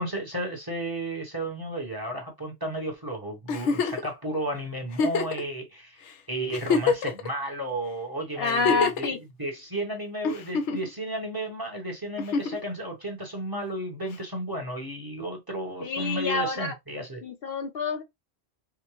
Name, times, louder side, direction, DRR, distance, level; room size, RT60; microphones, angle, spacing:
voice 1, 0.0-6.0 6.3-17.2, right 1 dB, 20° right, 1.0 m, -33 dB
Giggle, 3.5-4.1 4.9-5.4 6.1-6.2 6.5-7.3 8.4-9.1 10.2-10.9 12.2-12.6 14.1-14.2, left 5 dB, 85° left, 1.0 m, -26 dB
voice 2, 8.4-9.2 15.8-16.7 17.2-18.0, left 4 dB, 60° left, 0.9 m, -28 dB
4.8 x 2.2 x 3.0 m
omnidirectional pair, 1.2 m